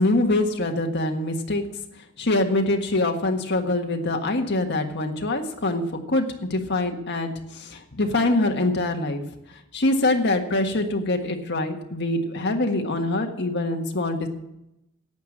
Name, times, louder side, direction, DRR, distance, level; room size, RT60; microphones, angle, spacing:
voice 1, 0.0-1.6 2.2-9.2 9.7-14.3, left 2 dB, 55° left, 3 dB, 1.6 m, -24 dB
11.5 x 8.3 x 7.3 m, 0.86 s
head